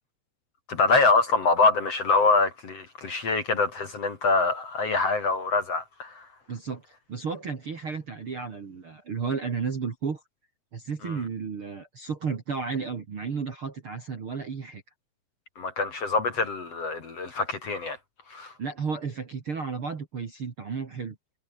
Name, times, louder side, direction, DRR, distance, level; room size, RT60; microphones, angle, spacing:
voice 1, 0.7-6.2 11.0-11.2 15.6-18.0 18.3-18.5, left 3 dB, 40° left, 3.2 m, -24 dB
voice 2, 6.5-10.2 10.7-14.8 18.6-21.2, right 5 dB, 40° right, 2.4 m, -33 dB
omnidirectional pair, 5.0 m